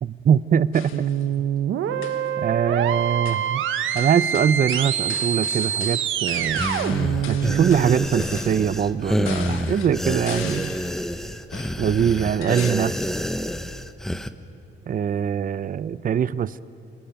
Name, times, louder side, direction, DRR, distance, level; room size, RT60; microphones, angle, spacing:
voice 1, 0.0-1.1 1.4-1.5 2.4-3.6 3.9-6.6 7.3-10.8 11.8-13.0 14.9-16.6, right 8 dB, 45° right, 17 dB, 0.6 m, -22 dB
sound 1, 0.7-1.2 1.9-2.4 3.3-3.6 4.0-11.0 11.5-12.7, left 9 dB, 85° left, 1.5 m, -40 dB
sound 2, 0.9-8.1, right 9 dB, 85° right, 1.2 m, -25 dB
sound 3, 6.5-14.3, equal, ahead, 1.1 m, -28 dB
28.5 x 20.5 x 9.1 m, 2.7 s
cardioid pair, 90°, 20 cm